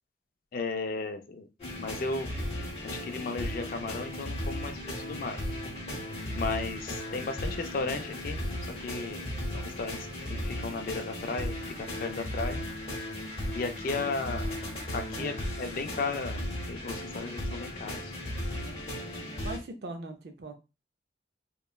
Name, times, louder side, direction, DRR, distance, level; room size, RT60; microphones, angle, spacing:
voice 1, 0.5-1.5 1.8-2.3 2.8-5.6 6.3-8.4 8.8-9.2 9.5-10.0 10.3-11.6 12.0-12.6 13.5-14.4 14.9-18.1, left 3 dB, 50° left, 7 dB, 0.3 m, -35 dB
sound 1, 1.6-19.6, left 1 dB, 35° left, 0.8 m, -36 dB
voice 2, 5.7-6.0 14.0-14.1 15.1-15.4 18.5-18.8 19.4-20.6, right 2 dB, 60° right, 6 dB, 0.5 m, -41 dB
2.9 x 2.1 x 2.2 m, 0.28 s
head